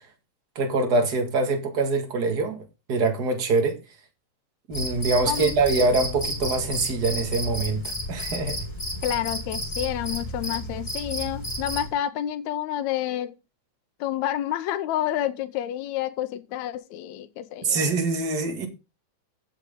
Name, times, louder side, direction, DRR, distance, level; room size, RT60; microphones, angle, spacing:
voice 1, 0.6-2.6 2.9-3.8 4.7-8.6 17.6-18.7, right 3 dB, 35° right, 2.3 m, -24 dB
Cricket, 4.7-11.9, equal, 10° left, 3.5 m, -32 dB
voice 2, 5.3-5.6 9.0-13.4 14.0-17.8, left 12 dB, 80° left, 2.1 m, -29 dB
15.0 x 6.4 x 3.8 m
omnidirectional pair, 3.3 m